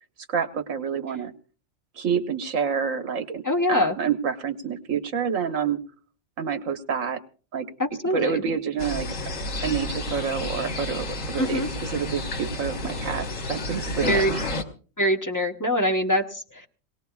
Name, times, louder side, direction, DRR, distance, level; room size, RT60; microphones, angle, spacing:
voice 1, 0.3-1.3 1.9-3.4 3.7-5.8 6.4-7.2 7.5-7.6 8.1-9.1 9.6-14.5, right 7 dB, 70° right, 8 dB, 1.4 m, -28 dB
voice 2, 3.4-3.9 7.8-8.4 11.4-11.7 14.1-14.3 15.0-16.7, equal, 15° left, 3 dB, 0.9 m, -24 dB
sound 1, 8.8-14.6, left 2 dB, 70° left, 1.7 m, -31 dB
23.5 x 18.5 x 2.3 m, 0.39 s
omnidirectional pair, 1.4 m